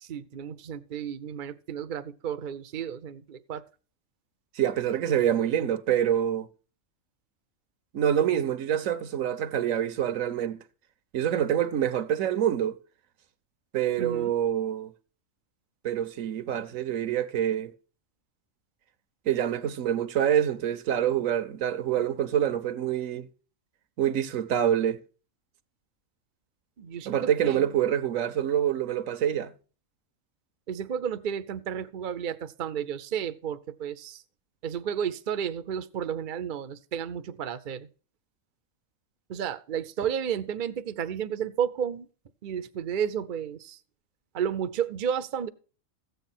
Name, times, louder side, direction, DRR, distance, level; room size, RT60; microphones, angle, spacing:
voice 1, 0.0-3.6 14.0-14.3 26.8-27.7 30.7-34.2 34.6-37.9 39.3-42.1 42.4-43.8 44.3-45.5, right 8 dB, 45° right, 0.7 m, -32 dB
voice 2, 4.5-6.5 7.9-10.6 11.1-12.8 13.7-14.9 15.8-17.7 19.3-23.3 24.0-25.0 27.0-29.5, right 10 dB, 80° right, 1.2 m, -26 dB
14.0 x 8.0 x 4.3 m
omnidirectional pair, 1.4 m